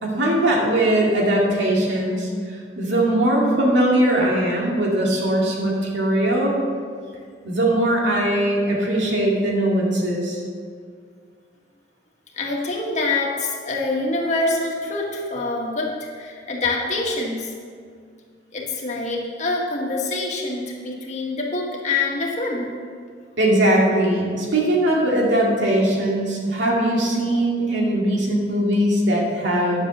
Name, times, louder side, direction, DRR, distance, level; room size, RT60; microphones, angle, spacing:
voice 1, 0.0-2.3 2.8-6.5 7.4-10.4 23.4-29.9, right 1 dB, 85° right, -3 dB, 2.5 m, -20 dB
voice 2, 12.3-17.5 18.5-22.7, left 3 dB, 40° left, -2 dB, 1.7 m, -25 dB
10.5 x 7.2 x 6.3 m, 2.1 s
head